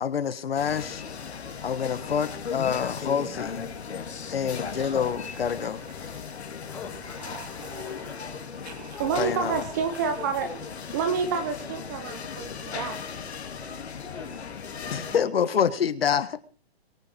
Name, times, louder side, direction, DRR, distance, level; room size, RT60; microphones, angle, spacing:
voice 1, 0.0-1.0 1.6-3.6 4.3-5.8 9.2-9.5 14.9-16.4, left 7 dB, 65° left, 13 dB, 1.5 m, -27 dB
sound 1, 0.5-15.2, left 6 dB, 80° left, 3.1 m, -37 dB
sound 2, 3.1-6.6 6.9-10.9, right 8 dB, 40° right, 1.8 m, -49 dB
voice 2, 4.2-4.8 6.6-7.4 7.8-8.4 8.9-9.7 10.2-10.7 14.0-15.2 15.4-15.6, left 5 dB, 5° left, 0 dB, 2.7 m, -44 dB
voice 3, 9.0-10.5 10.9-13.0, right 6 dB, 15° right, 8 dB, 0.8 m, -28 dB
23.0 x 9.0 x 4.6 m, 0.37 s
hypercardioid pair, 170°, 32 cm